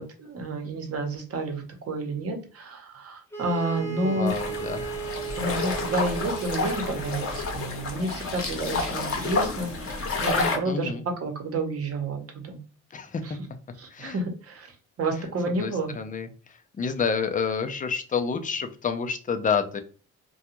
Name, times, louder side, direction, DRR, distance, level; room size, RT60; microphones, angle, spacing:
voice 1, 0.0-4.3 5.4-12.6 13.2-13.4 13.8-14.7 15.0-15.9, right 2 dB, 50° right, 4 dB, 0.9 m, -30 dB
sound 1, 3.3-7.7, right 7 dB, 10° left, 0.8 m, -36 dB
voice 2, 3.9-4.9 10.7-11.0 12.9-13.4 13.9-14.1 15.6-19.8, left 6 dB, 25° left, 8 dB, 0.4 m, -29 dB
sound 2, 4.3-10.6, left 3 dB, 45° left, 0.8 m, -30 dB
2.3 x 2.3 x 2.9 m, 0.39 s
cardioid pair, 90°, 30 cm